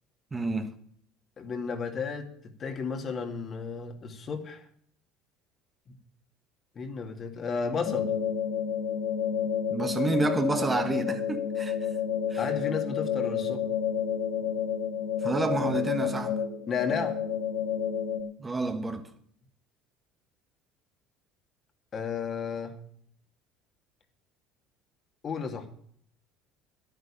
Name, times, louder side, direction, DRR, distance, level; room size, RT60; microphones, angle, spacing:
voice 1, 0.3-0.7 9.7-11.9 12.3-12.4 15.2-16.4 18.4-19.1, right 2 dB, 20° right, 1.4 m, -29 dB
voice 2, 1.4-4.7 6.8-8.1 12.4-13.6 16.7-17.2 21.9-22.8 25.2-25.7, left 5 dB, 40° left, 2.3 m, -33 dB
sound 1, 7.8-18.2, left 8 dB, 80° left, 4.0 m, -30 dB
10.5 x 9.2 x 8.8 m
supercardioid pair, 90°, 0 cm